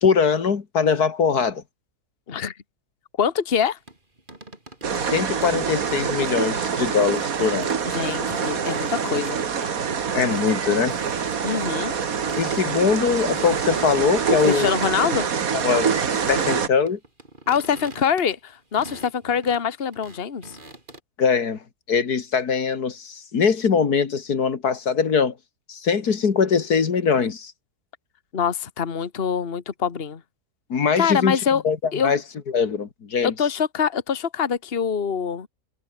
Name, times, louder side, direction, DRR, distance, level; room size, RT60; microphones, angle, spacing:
voice 1, 0.0-1.6 4.9-7.7 10.1-11.0 12.4-14.7 15.6-17.0 21.2-21.6 21.9-25.3 25.7-27.5 30.7-31.4 31.6-31.8 32.0-32.2 32.5-33.3, left 6 dB, 80° left, 2.4 m, -22 dB
voice 2, 3.2-3.8 7.8-9.4 11.4-12.0 14.3-15.3 17.5-20.5 28.3-30.2 31.0-31.6 31.9-32.1 33.2-35.5, left 7 dB, 40° left, 1.6 m, -24 dB
sound 1, 3.9-5.2 5.4-6.6 7.1-7.4 7.6-7.8 8.2-10.0 10.3-10.6 10.8-11.4 11.7-11.8 12.1-12.8 13.4-14.9 15.1-16.4 16.9-21.0, right 2 dB, 30° right, 4.4 m, -42 dB
sound 2, 4.8-16.7, right 6 dB, 65° right, 2.0 m, -25 dB
omnidirectional pair, 1.6 m